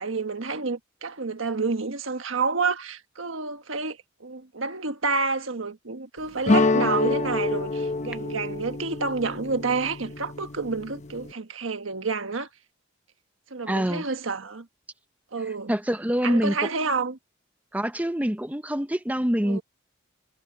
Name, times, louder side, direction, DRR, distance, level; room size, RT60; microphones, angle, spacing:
voice 1, 0.0-12.5 13.5-14.7 15.3-15.7 16.2-17.2 19.4-19.6, right 4 dB, 80° right, 1.4 m, -29 dB
sound 1, 6.5-11.3, left 3 dB, 35° left, 1.0 m, -27 dB
voice 2, 13.7-14.0 15.7-16.6 17.7-19.6, equal, 10° right, 0.7 m, -25 dB
head